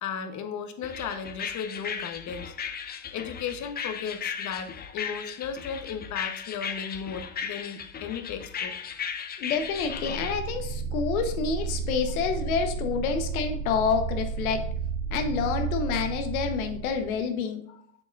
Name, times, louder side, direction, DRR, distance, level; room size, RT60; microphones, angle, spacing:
voice 1, 0.0-2.5 3.1-8.9 17.7-17.8, left 7 dB, 45° left, 7 dB, 1.2 m, -35 dB
sound 1, 0.8-10.3, left 7 dB, 25° left, 0.6 m, -36 dB
voice 2, 9.4-14.6 15.1-17.7, left 6 dB, 80° left, 5 dB, 1.3 m, -28 dB
sound 2, 9.6-17.3, right 6 dB, 60° right, 0.8 m, -32 dB
7.7 x 7.1 x 2.6 m, 0.64 s
hypercardioid pair, 100°, 42 cm